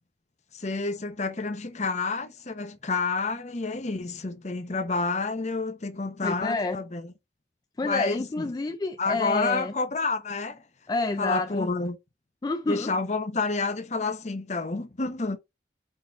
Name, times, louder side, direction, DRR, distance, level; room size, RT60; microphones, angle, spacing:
voice 1, 0.5-7.1 7.8-8.5 9.0-10.6 11.2-12.0 12.7-15.4, left 3 dB, 40° left, 0.8 m, -29 dB
voice 2, 6.2-6.8 7.8-9.7 10.9-11.7 12.4-12.9, left 3 dB, 20° left, 0.3 m, -28 dB
5.0 x 4.2 x 2.5 m
head